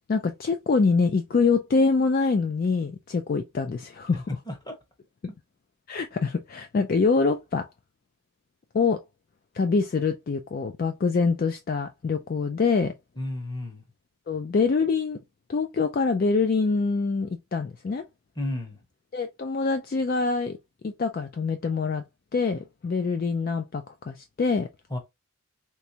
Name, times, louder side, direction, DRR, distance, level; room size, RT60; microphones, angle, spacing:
voice 1, 0.1-4.3 5.9-7.6 8.7-9.0 9.5-12.9 14.3-15.2 15.5-18.0 19.1-20.6 20.8-22.0 22.3-24.7, left 4 dB, 40° left, 0.3 m, -25 dB
voice 2, 13.2-13.8 18.4-18.8 24.9-25.0, left 1 dB, 20° left, 0.9 m, -32 dB
3.4 x 3.0 x 2.7 m
head